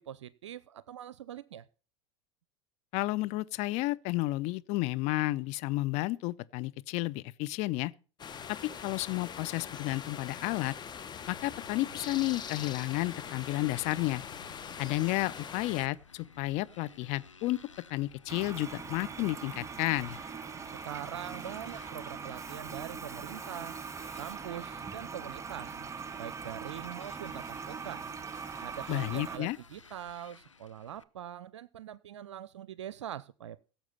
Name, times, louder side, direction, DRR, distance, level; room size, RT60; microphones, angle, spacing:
voice 1, 0.0-1.7 20.7-23.8 24.2-25.8 26.2-28.1 28.6-33.6, right 10 dB, 70° right, 0.5 m, -43 dB
voice 2, 2.9-7.9 8.5-10.7 11.3-14.2 14.8-17.6 17.9-20.2 28.9-29.6, left 19 dB, 45° left, 0.6 m, -32 dB
sound 1, 8.2-15.9, left 7 dB, 30° left, 1.4 m, -43 dB
Motorcycle, 11.3-31.0, left 5 dB, 90° left, 0.6 m, -55 dB
Toilet flush, 18.3-29.4, right 5 dB, 20° right, 0.8 m, -41 dB
17.0 x 7.3 x 5.5 m
figure-of-eight pair, 80°, 16 cm